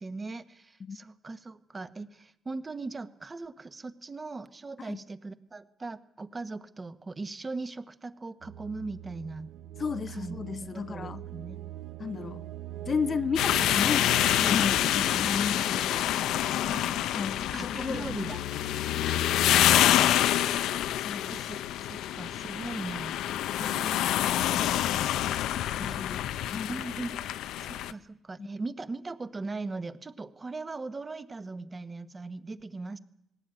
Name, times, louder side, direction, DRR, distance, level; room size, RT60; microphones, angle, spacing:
voice 1, 0.0-9.5 10.1-10.4 10.6-11.6 16.7-17.1 17.5-18.4 21.3-23.2 23.6-24.0 25.8-26.0 26.7-27.3 27.6-33.0, right 3 dB, 25° right, 1.2 m, -39 dB
sound 1, 8.4-18.2, right 13 dB, 80° right, 1.0 m, -43 dB
voice 2, 9.8-11.2 12.0-12.4 12.9-16.1 17.1-18.3 21.0-21.4 25.6-26.8 28.4-28.5, left 5 dB, 40° left, 0.7 m, -33 dB
sound 2, 13.4-27.9, left 12 dB, 90° left, 0.7 m, -27 dB
19.5 x 17.0 x 9.1 m
cardioid pair, 110°, 0 cm